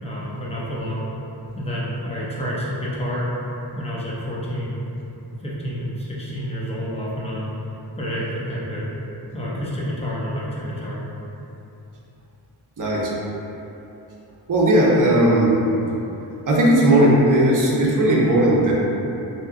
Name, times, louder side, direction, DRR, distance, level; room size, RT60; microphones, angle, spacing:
voice 1, 0.0-1.0 1.6-3.3 3.7-4.9 5.4-7.5 8.0-8.9 9.3-11.0, equal, 15° left, -7 dB, 0.6 m, -29 dB
voice 2, 12.8-13.1 14.5-15.6 16.5-18.7, right 1 dB, 45° right, -5 dB, 0.7 m, -17 dB
2.8 x 2.3 x 3.5 m, 3.0 s
wide cardioid pair, 105°, 43 cm